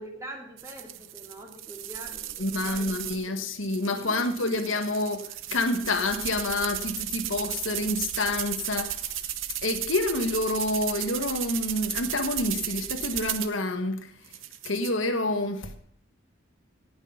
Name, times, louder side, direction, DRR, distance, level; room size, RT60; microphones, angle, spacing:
voice 1, 0.0-3.0 4.0-4.3, right 1 dB, 15° right, 2.6 m, -43 dB
sound 1, 0.6-3.3 3.6-13.6 14.3-14.9, right 12 dB, 80° right, 0.8 m, -35 dB
voice 2, 2.4-9.1 9.6-14.1 14.6-15.7, left 2 dB, 80° left, 1.3 m, -28 dB
18.0 x 6.3 x 5.7 m
head